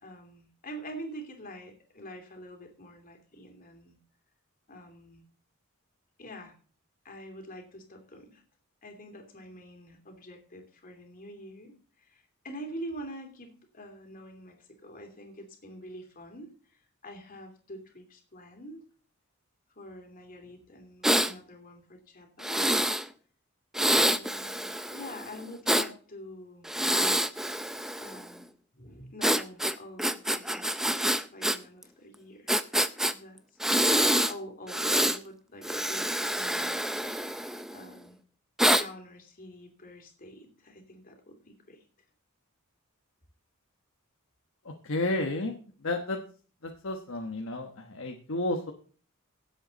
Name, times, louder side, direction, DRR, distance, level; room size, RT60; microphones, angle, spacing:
voice 1, 0.0-4.0 4.7-5.2 6.2-6.6 7.0-8.4 8.8-18.8 19.8-22.8 23.9-26.7 28.0-28.5 28.7-32.5 33.1-33.4 33.7-36.8 37.7-38.2 38.7-41.8, equal, 40° left, 3 dB, 2.9 m, -46 dB
Breathing, 21.0-21.3 22.4-23.0 23.7-25.9 26.6-28.3 29.2-31.6 31.8-31.9 32.5-33.1 33.6-34.3 34.7-35.2 35.6-37.8 38.6-38.8, right 1 dB, ahead, 0.5 m, -26 dB
voice 2, 44.6-45.5 45.8-46.2 46.6-48.7, left 2 dB, 65° left, 2 dB, 1.2 m, -32 dB
16.5 x 7.9 x 4.1 m, 0.42 s
head